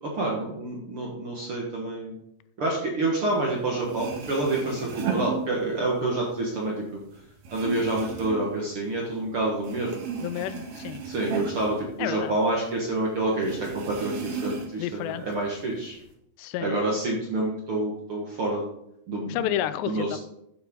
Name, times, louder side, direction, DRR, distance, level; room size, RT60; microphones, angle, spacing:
voice 1, 0.0-2.2 2.6-7.0 7.5-10.0 11.0-16.0 16.6-18.7 19.1-19.6 19.9-20.2, right 2 dB, 55° right, -2 dB, 1.6 m, -28 dB
sound 1, 3.5-3.6 3.8-6.0 6.4-9.3 9.6-12.6 12.9-13.0 13.4-14.9 15.3-16.1, right 5 dB, 70° right, 3.2 m, -35 dB
voice 2, 10.2-11.0 12.0-12.3 14.8-15.2 16.4-16.8 19.3-20.2, left 12 dB, 85° left, 13 dB, 2.7 m, -30 dB
13.5 x 7.3 x 3.8 m, 0.78 s
omnidirectional pair, 4.8 m